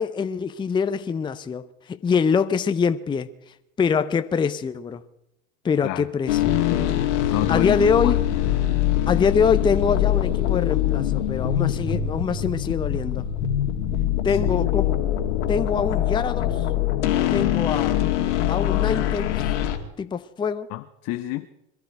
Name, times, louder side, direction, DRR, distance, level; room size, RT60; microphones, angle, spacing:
voice 1, 0.0-3.3 3.8-5.0 5.6-6.6 7.5-8.2 9.1-13.2 14.2-15.0 15.5-16.7 17.3-18.0 18.5-19.5 20.0-20.7, left 6 dB, 15° left, 0.6 m, -24 dB
sound 1, 6.3-19.8, left 11 dB, 70° left, 2.1 m, -23 dB
voice 2, 7.3-8.5 14.3-14.4 20.7-21.5, left 16 dB, 45° left, 0.9 m, -29 dB
23.0 x 12.5 x 4.6 m
hypercardioid pair, 95°, 37 cm